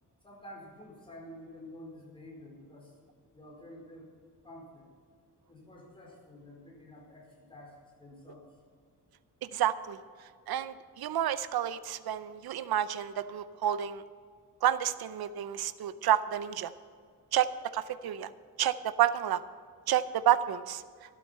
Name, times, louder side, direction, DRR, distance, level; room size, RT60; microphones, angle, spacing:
voice 1, 0.2-2.9 3.3-4.1 4.4-4.9 5.5-8.5, left 1 dB, 15° left, -3 dB, 4.4 m, -50 dB
voice 2, 9.5-10.0 10.5-14.0 14.6-16.7 17.3-18.3 18.6-19.4 19.9-20.8, right 11 dB, 85° right, 13 dB, 0.6 m, -29 dB
12.5 x 12.0 x 5.5 m, 2.1 s
wide cardioid pair, 140°, 36 cm